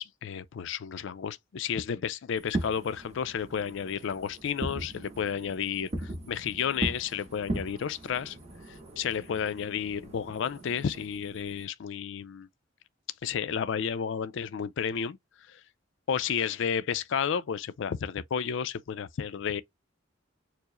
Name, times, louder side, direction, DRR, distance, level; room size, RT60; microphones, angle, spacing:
voice 1, 0.0-8.4 8.7-12.5 13.2-15.2 15.5-15.6 16.1-19.6, left 7 dB, 70° left, 0.4 m, -32 dB
Fireworks, 2.4-11.6, right 1 dB, 35° right, 1.0 m, -39 dB
4.5 x 2.0 x 3.0 m
head